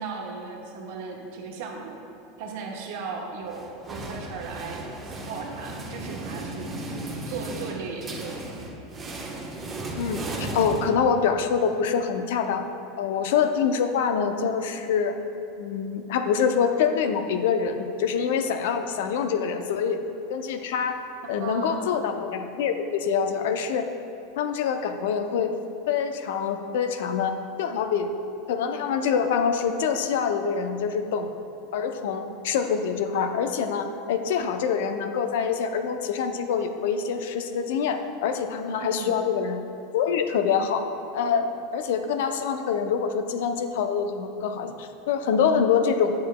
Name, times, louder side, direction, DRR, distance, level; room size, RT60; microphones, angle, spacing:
voice 1, 0.0-2.0 2.4-8.4 21.2-22.0 38.8-39.2, right 4 dB, 65° right, 0 dB, 0.9 m, -37 dB
sound 1, 3.5-11.4, right 2 dB, 25° right, 1.0 m, -35 dB
voice 2, 10.0-12.7 13.0-15.2 15.6-20.0 20.3-21.0 21.3-23.8 24.4-25.5 25.9-28.1 28.5-31.3 31.7-39.6 39.9-40.8 41.1-41.5 41.7-46.1, left 6 dB, 70° left, 7 dB, 0.5 m, -25 dB
9.2 x 6.4 x 2.2 m, 3.0 s
hypercardioid pair, 95°, 0 cm